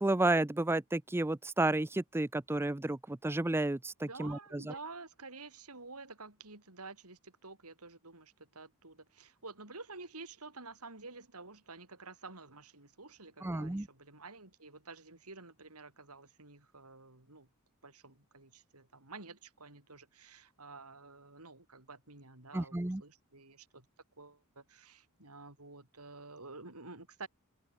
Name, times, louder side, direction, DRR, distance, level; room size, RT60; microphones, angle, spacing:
voice 1, 0.0-4.7 13.4-13.9 22.5-23.0, right 2 dB, 10° right, 0.5 m, -32 dB
voice 2, 4.0-17.5 17.8-23.9 24.2-27.3, right 3 dB, 85° right, 6.1 m, -50 dB
head